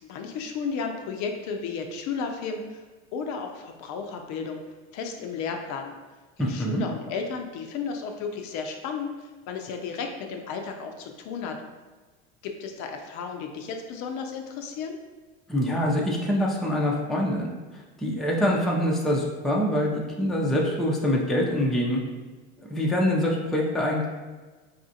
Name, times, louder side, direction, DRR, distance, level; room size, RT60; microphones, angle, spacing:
voice 1, 0.0-2.8 3.1-4.6 4.9-5.9 6.4-11.6 12.4-15.0, left 5 dB, 50° left, 4 dB, 0.5 m, -33 dB
voice 2, 6.4-6.8 15.5-17.5 17.7-22.0 22.6-24.1, equal, ahead, -3 dB, 0.5 m, -25 dB
4.1 x 2.4 x 2.7 m, 1.3 s
hypercardioid pair, 95°, 36 cm